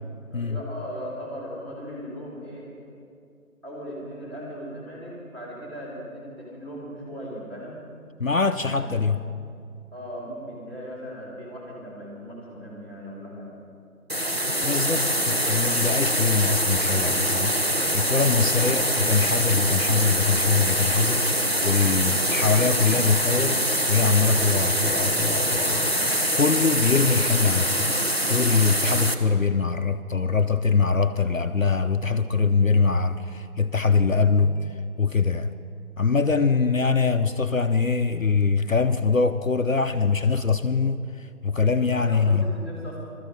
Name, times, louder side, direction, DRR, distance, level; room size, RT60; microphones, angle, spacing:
voice 1, 0.3-3.0 3.6-7.8 8.6-9.2 9.9-13.5 41.8-43.0, equal, 15° right, -10 dB, 3.5 m, -38 dB
voice 2, 8.2-9.2 14.6-23.6 23.9-27.9 28.2-35.5 36.0-42.5, left 4 dB, 60° left, 9 dB, 0.6 m, -23 dB
sound 1, 14.1-29.1, equal, 45° right, 0.8 m, -24 dB
19.5 x 13.5 x 4.8 m, 2.4 s
figure-of-eight pair, 175°, 45 cm